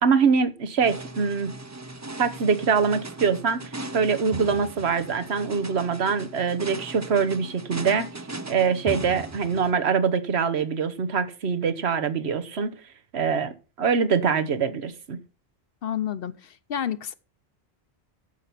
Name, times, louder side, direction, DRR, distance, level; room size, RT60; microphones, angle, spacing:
voice 1, 0.0-1.5 2.2-8.1 8.5-12.7 13.1-15.2, right 6 dB, 85° right, 1.3 m, -24 dB
sound 1, 0.8-9.7, right 2 dB, 20° right, 0.6 m, -38 dB
voice 2, 15.8-17.2, left 9 dB, 65° left, 0.9 m, -30 dB
10.0 x 6.9 x 5.8 m
omnidirectional pair, 1.1 m